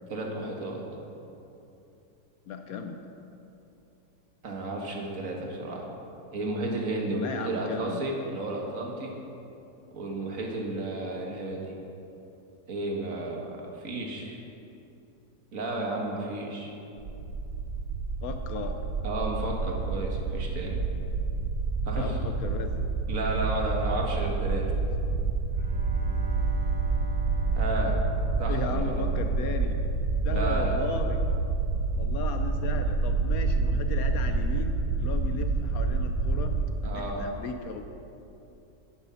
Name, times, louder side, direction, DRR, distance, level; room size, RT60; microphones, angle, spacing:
voice 1, 0.1-0.8 4.4-5.8 6.3-9.1 9.9-11.7 12.7-14.4 15.5-16.7 19.0-20.8 21.9-22.3 23.1-24.6 27.6-28.0 28.4-29.0 30.3-30.8 36.8-37.3, right 2 dB, 50° right, 0 dB, 1.8 m, -32 dB
voice 2, 2.5-3.0 7.2-8.0 18.2-18.8 22.0-22.7 28.5-31.2 32.0-36.5 36.8-37.8, left 5 dB, 65° left, 6 dB, 0.9 m, -36 dB
sound 1, 17.0-36.6, right 4 dB, 70° right, 1.5 m, -28 dB
Bowed string instrument, 25.4-29.2, left 4 dB, 90° right, 2.1 m, -40 dB
9.9 x 9.7 x 5.6 m, 2.8 s
omnidirectional pair, 2.0 m